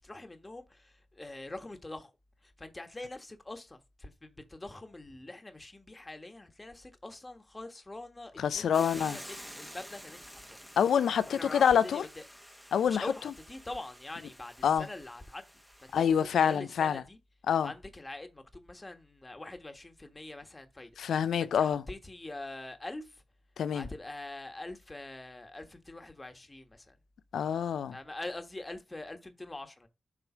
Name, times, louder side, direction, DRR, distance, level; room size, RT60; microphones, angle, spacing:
voice 1, 0.0-2.1 2.4-10.6 11.2-12.2 12.8-15.5 15.8-16.1 16.4-17.2 17.6-20.9 21.4-23.2 23.7-27.0 27.9-29.9, left 2 dB, 30° left, 1.5 m, -44 dB
voice 2, 8.4-9.2 10.8-12.0 12.7-13.0 14.6-14.9 15.9-17.0 17.5-17.7 21.0-21.8 23.6-23.9 27.3-28.0, left 8 dB, 80° left, 0.4 m, -26 dB
Hiss / Boiling, 8.7-16.6, equal, 5° right, 1.2 m, -50 dB
7.3 x 3.2 x 5.1 m
supercardioid pair, 40°, 0 cm